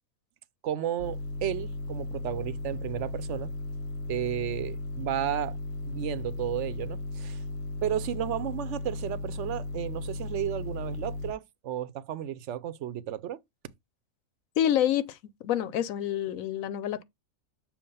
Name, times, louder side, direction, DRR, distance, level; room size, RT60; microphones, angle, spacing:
voice 1, 0.6-3.5 4.1-5.6 5.8-7.4 7.8-13.4, right 11 dB, 70° right, 0.9 m, -33 dB
sound 1, 1.0-11.3, left 2 dB, 55° left, 1.4 m, -36 dB
voice 2, 14.6-15.2 15.4-17.0, left 10 dB, 90° left, 1.1 m, -27 dB
7.1 x 2.4 x 5.4 m
omnidirectional pair, 1.4 m